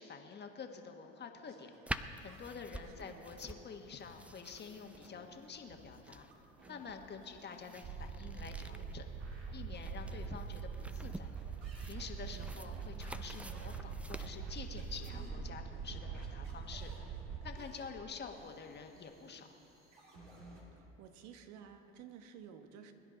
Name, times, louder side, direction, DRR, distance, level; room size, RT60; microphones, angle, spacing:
voice 1, 0.0-1.7 2.2-6.3 6.7-9.1 9.5-11.3 11.8-17.1 17.4-19.5, left 5 dB, 35° left, 4 dB, 1.5 m, -48 dB
sound 1, 1.5-20.6, right 1 dB, 85° right, 2.8 m, -57 dB
sound 2, 1.9-15.1, right 1 dB, 5° right, 0.5 m, -49 dB
voice 2, 2.8-3.2 12.2-12.7 20.7-22.9, right 8 dB, 65° right, 7 dB, 1.3 m, -54 dB
sound 3, 7.8-17.6, right 6 dB, 35° right, 0.9 m, -43 dB
22.0 x 10.5 x 4.0 m, 2.8 s
hypercardioid pair, 80°, 31 cm